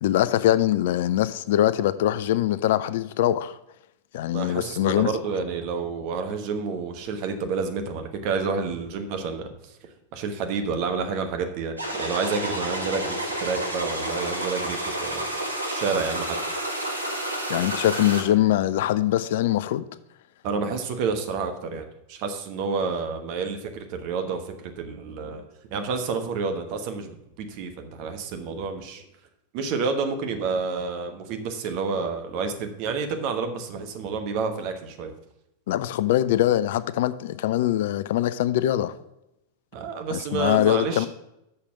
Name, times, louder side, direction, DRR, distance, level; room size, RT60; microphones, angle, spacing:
voice 1, 0.0-3.6 4.1-5.1 17.5-19.9 35.7-38.9 40.1-41.1, left 13 dB, 55° left, 0.4 m, -23 dB
voice 2, 4.3-9.5 10.1-15.3 15.7-16.4 20.4-25.4 25.7-29.0 29.5-35.1 39.7-41.1, right 5 dB, 45° right, 1.2 m, -29 dB
sound 1, 11.8-18.2, right 1 dB, 85° right, 1.4 m, -30 dB
6.6 x 5.6 x 7.2 m
figure-of-eight pair, 90°, 0 cm